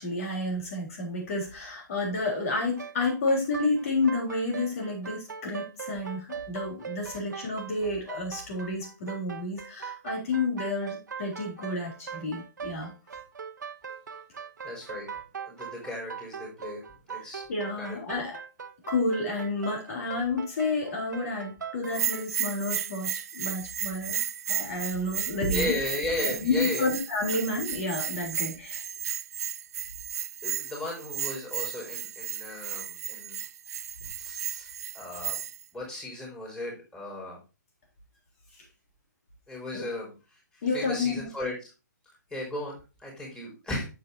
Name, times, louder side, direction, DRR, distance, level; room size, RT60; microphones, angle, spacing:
voice 1, 0.0-12.9 17.5-18.4 18.9-24.2 24.5-25.7 26.2-28.8 39.7-39.8 40.6-41.3, left 2 dB, 50° left, 0 dB, 3.7 m, -30 dB
sound 1, 2.5-22.3, right 7 dB, 75° right, 1.1 m, -41 dB
voice 2, 14.6-15.1 15.5-16.8 17.1-17.4 17.8-18.2 25.5-26.8 30.4-33.4 34.0-35.4 35.7-37.4 39.5-40.1 40.5-41.5 42.3-43.9, left 2 dB, 10° left, -3 dB, 4.4 m, -35 dB
Bell, 21.9-35.6, right 9 dB, 55° right, 0.5 m, -34 dB
9.2 x 7.5 x 2.8 m, 0.30 s
hypercardioid pair, 140°, 10 cm